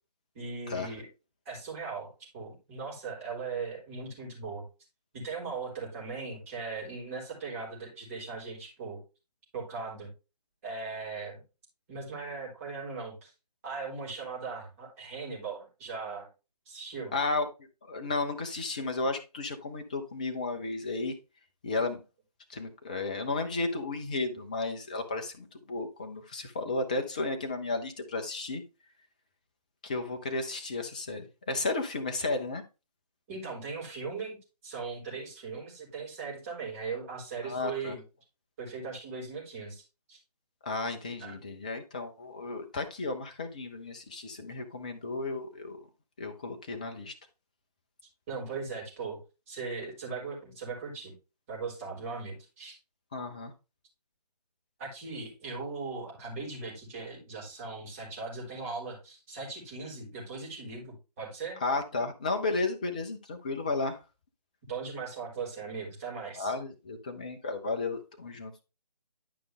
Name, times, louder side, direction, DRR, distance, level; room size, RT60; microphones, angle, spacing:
voice 1, 0.3-1.1 1.5-4.6 5.1-9.0 9.5-10.1 10.6-11.4 11.9-13.3 13.6-16.3 16.7-17.1 33.3-38.0 38.6-40.2 41.2-41.4 48.3-49.2 49.5-51.1 51.5-52.8 54.8-61.6 64.7-66.5, right 4 dB, 20° right, 4.0 m, -39 dB
voice 2, 17.1-17.5 17.9-21.2 21.6-22.0 22.5-28.6 29.8-32.6 37.4-38.0 40.6-45.8 46.2-47.1 53.1-53.5 61.6-64.0 66.4-68.6, left 3 dB, 10° left, 0.5 m, -33 dB
11.0 x 5.2 x 3.3 m
figure-of-eight pair, 150°, 21 cm